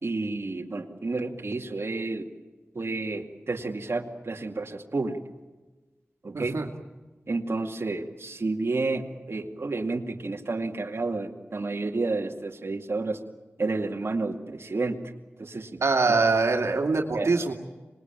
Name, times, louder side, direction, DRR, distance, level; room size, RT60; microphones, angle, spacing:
voice 1, 0.0-2.3 2.7-5.2 6.2-6.6 7.3-13.2 13.6-15.0 15.4-16.2 17.1-17.3, right 3 dB, 60° right, 2 dB, 2.4 m, -30 dB
voice 2, 6.3-6.7 15.8-17.5, right 3 dB, 80° right, 2 dB, 2.4 m, -23 dB
26.0 x 20.5 x 9.1 m, 1.2 s
cardioid pair, 50°, 5 cm